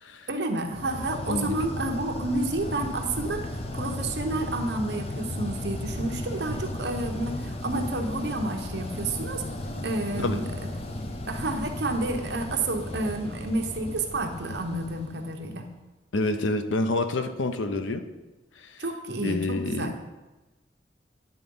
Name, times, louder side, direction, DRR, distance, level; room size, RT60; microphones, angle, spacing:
voice 1, 0.3-9.4 9.8-10.4 11.2-15.7 18.8-19.9, right 2 dB, 65° right, 4 dB, 0.9 m, -30 dB
sound 1, 0.7-15.7, left 1 dB, 30° left, 0.6 m, -35 dB
voice 2, 16.1-18.0 18.6-18.8 19.2-20.0, left 2 dB, 90° left, 9 dB, 0.6 m, -28 dB
9.9 x 3.8 x 5.3 m, 1.1 s
head